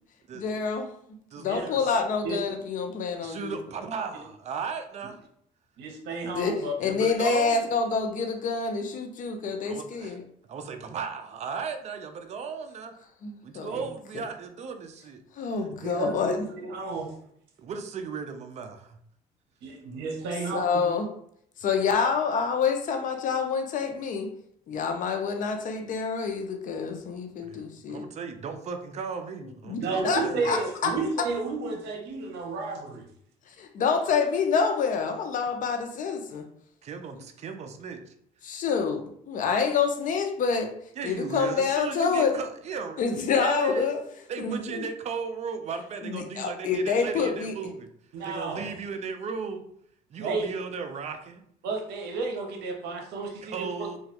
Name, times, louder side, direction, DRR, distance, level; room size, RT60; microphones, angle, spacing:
voice 1, 0.3-0.9 1.4-3.6 6.3-10.2 13.2-13.7 15.4-16.4 20.5-21.1 21.6-24.3 24.7-28.1 29.7-31.0 33.6-36.4 37.1-37.2 38.4-40.7 41.0-42.4 43.0-44.0 44.4-44.8 46.0-47.5, left 5 dB, 50° left, 5 dB, 0.5 m, -27 dB
voice 2, 1.3-1.8 3.2-5.2 6.8-7.6 9.6-10.2 10.4-12.9 13.4-15.5 17.6-19.0 27.4-27.6 27.9-30.4 36.8-38.1 41.0-43.0 43.3-43.9 44.3-47.9 48.2-49.6 50.1-51.4 53.4-54.0, right 5 dB, 40° right, 6 dB, 0.4 m, -36 dB
voice 3, 5.8-6.7 13.7-13.8 15.8-17.1 19.6-20.6 29.8-33.1 48.1-48.7 50.2-50.5 51.6-53.9, right 3 dB, 80° right, 3 dB, 0.7 m, -32 dB
2.9 x 2.3 x 2.9 m, 0.68 s
cardioid pair, 110°, 17 cm